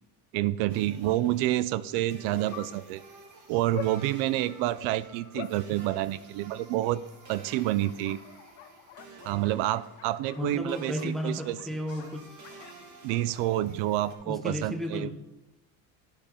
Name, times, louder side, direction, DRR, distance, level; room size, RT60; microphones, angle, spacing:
voice 1, 0.3-3.0 3.5-7.0 7.3-8.2 9.2-11.6 13.0-15.1, right 15 dB, 80° right, 17 dB, 0.5 m, -28 dB
sound 1, 0.7-14.2, right 3 dB, 35° right, 1.5 m, -51 dB
Piano, 2.5-7.6 7.9-8.1 8.8-9.2, left 14 dB, 45° left, 0.6 m, -54 dB
Bark, 3.0-14.3, left 11 dB, 75° left, 0.8 m, -48 dB
voice 2, 10.4-12.3 14.2-15.1, left 1 dB, ahead, 6 dB, 0.6 m, -33 dB
10.5 x 5.2 x 4.3 m, 0.93 s
cardioid pair, 135°, 49 cm